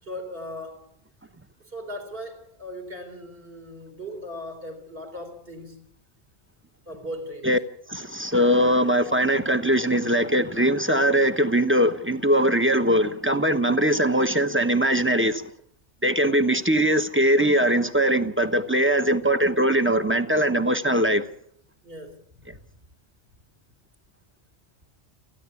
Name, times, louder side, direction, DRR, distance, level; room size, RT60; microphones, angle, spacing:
voice 1, 0.0-0.9 1.6-5.8 6.9-7.5 21.8-22.6, equal, 55° right, 4.1 m, -38 dB
voice 2, 7.9-15.5 16.0-21.2, equal, 10° right, 1.0 m, -21 dB
29.0 x 10.5 x 8.4 m
omnidirectional pair, 1.1 m